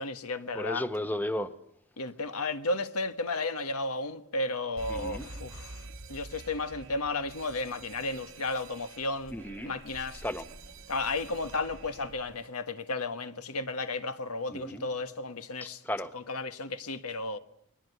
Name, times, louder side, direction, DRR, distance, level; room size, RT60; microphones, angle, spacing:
voice 1, 0.0-0.8 2.0-5.8 6.1-9.3 9.6-10.2 10.9-15.8 16.1-17.4, left 3 dB, 90° left, 1.6 m, -33 dB
voice 2, 0.5-1.5 4.9-5.3 9.3-9.7 10.2-10.4 14.5-14.9 15.6-16.1, left 1 dB, 10° left, 1.0 m, -34 dB
Alarm, 4.8-12.5, right 3 dB, 55° right, 1.2 m, -47 dB
sound 1, 6.6-12.5, equal, 60° left, 3.6 m, -54 dB
30.0 x 21.5 x 8.2 m
head